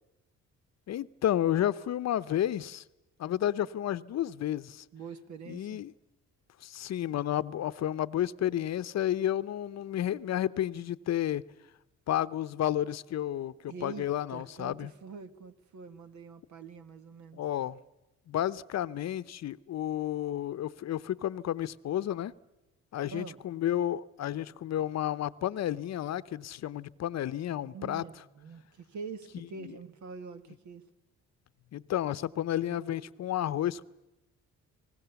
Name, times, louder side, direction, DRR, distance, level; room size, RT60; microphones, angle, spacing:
voice 1, 0.9-2.8 3.2-4.8 5.5-5.9 6.6-11.4 12.1-14.9 17.3-17.8 18.3-22.3 22.9-28.0 29.6-29.7 31.7-33.8, left 11 dB, 60° left, 0.7 m, -31 dB
voice 2, 4.9-5.8 13.7-17.4 23.1-23.4 27.6-30.8 33.0-33.3, right 5 dB, 70° right, 1.6 m, -45 dB
28.5 x 19.5 x 7.0 m
cardioid pair, 90°, 30 cm